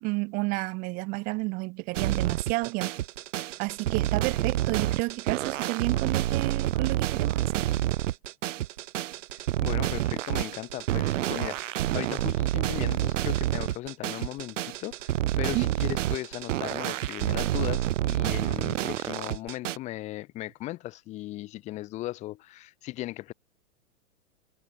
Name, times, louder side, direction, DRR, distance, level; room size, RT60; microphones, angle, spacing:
voice 1, 0.0-2.9 3.6-7.6 15.5-15.7, right 26 dB, 20° right, 1.2 m, -31 dB
sound 1, 1.9-19.8, right 13 dB, 65° right, 0.7 m, -28 dB
voice 2, 9.3-23.3, left 16 dB, 15° left, 1.3 m, -37 dB
hypercardioid pair, 170°, 41 cm